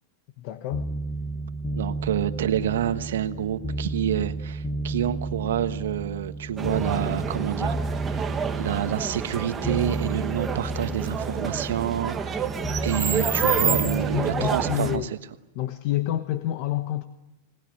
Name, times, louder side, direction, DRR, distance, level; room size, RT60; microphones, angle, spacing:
voice 1, 0.4-0.8 13.8-15.1 15.5-17.0, left 14 dB, 45° left, 10 dB, 1.1 m, -28 dB
sound 1, 0.7-15.1, right 2 dB, 15° left, 1.3 m, -32 dB
voice 2, 1.8-7.8 8.0-8.3 8.6-12.5 12.8-15.2, right 10 dB, 85° right, 10 dB, 1.4 m, -28 dB
sound 2, 6.6-15.0, right 6 dB, 15° right, 1.4 m, -28 dB
25.0 x 19.5 x 9.3 m, 0.96 s
supercardioid pair, 160°, 0 cm